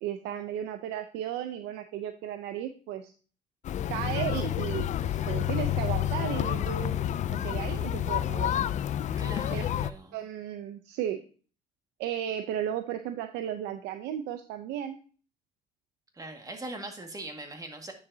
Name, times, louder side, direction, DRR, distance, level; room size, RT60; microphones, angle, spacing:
voice 1, 0.0-3.1 3.9-7.0 7.4-8.5 9.5-9.6 10.1-11.2 12.0-15.0, right 10 dB, 90° right, 8 dB, 0.6 m, -34 dB
sound 1, 3.6-9.9, left 11 dB, 45° left, 0.4 m, -29 dB
voice 2, 9.2-10.2 16.1-17.9, right 2 dB, 20° right, 4 dB, 1.9 m, -41 dB
9.5 x 7.1 x 2.7 m, 0.39 s
cardioid pair, 110°, 17 cm